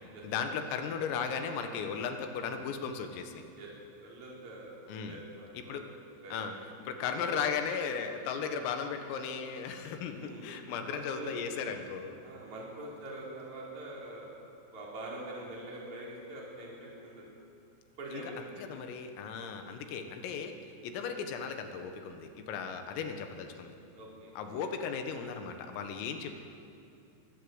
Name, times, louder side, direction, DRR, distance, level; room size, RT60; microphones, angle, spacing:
voice 1, 0.2-3.4 4.9-5.2 5.6-5.8 6.3-6.5 6.8-12.2 18.1-20.5 20.8-23.8 24.4-26.4, left 6 dB, 85° left, 6 dB, 4.2 m, -36 dB
voice 2, 4.0-5.8 6.2-6.6 10.2-10.5 10.9-11.4 12.2-14.3 14.7-17.2 18.0-18.4 23.9-24.6, right 1 dB, 35° right, -4 dB, 5.3 m, -44 dB
23.5 x 20.0 x 8.0 m, 2.6 s
omnidirectional pair, 5.9 m